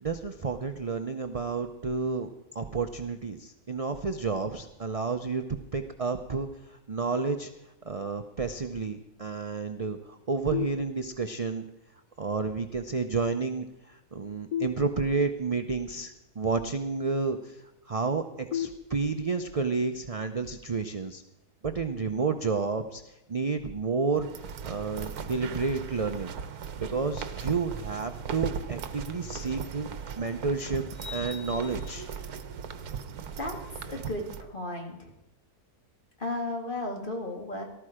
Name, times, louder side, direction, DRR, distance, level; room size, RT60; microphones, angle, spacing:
voice 1, 0.0-5.4 5.7-7.5 7.9-11.6 12.2-21.2 21.6-24.3 24.6-26.3 26.8-29.9 30.2-30.8 31.1-32.1, right 4 dB, 40° right, 7 dB, 0.5 m, -31 dB
sound 1, 10.5-11.5 14.5-15.5 18.5-19.5, left 9 dB, 60° left, 1.5 m, -36 dB
sound 2, 24.2-34.4, right 7 dB, 75° right, 1.4 m, -38 dB
sound 3, 29.3-29.4 30.9-32.4, left 4 dB, 85° left, 6.2 m, -44 dB
voice 2, 33.9-35.1 36.2-37.6, left 1 dB, 35° left, 2 dB, 2.2 m, -34 dB
18.5 x 13.0 x 5.0 m, 0.91 s
omnidirectional pair, 1.6 m